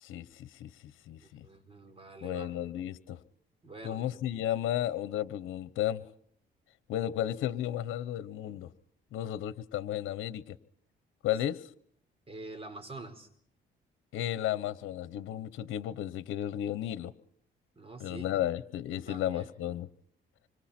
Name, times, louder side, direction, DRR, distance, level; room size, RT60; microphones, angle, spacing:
voice 1, 0.0-1.5 2.2-3.2 3.8-6.1 6.9-8.7 9.1-10.6 11.2-11.7 14.1-17.1 18.0-19.9, left 12 dB, 85° left, 15 dB, 1.0 m, -34 dB
voice 2, 1.2-2.5 3.6-4.1 12.3-13.3 17.8-18.2 18.9-19.5, right 2 dB, 30° right, 7 dB, 4.6 m, -46 dB
27.0 x 25.5 x 4.4 m, 0.65 s
cardioid pair, 90°, 20 cm